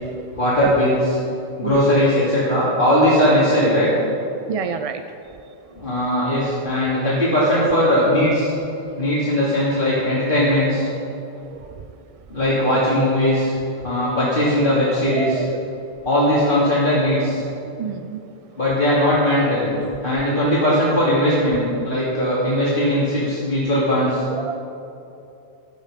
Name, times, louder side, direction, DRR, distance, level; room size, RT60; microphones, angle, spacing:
voice 1, 0.4-1.2 1.6-3.9 5.8-8.5 9.0-10.9 12.3-13.5 13.8-15.4 16.0-17.4 18.6-19.7 20.0-24.2, equal, 55° left, -10 dB, 2.9 m, -19 dB
voice 2, 4.5-5.0 11.5-11.6 15.2-15.7 17.8-18.2 24.3-24.6, right 6 dB, 50° right, 8 dB, 0.5 m, -28 dB
16.5 x 12.0 x 5.1 m, 2.8 s
omnidirectional pair, 1.1 m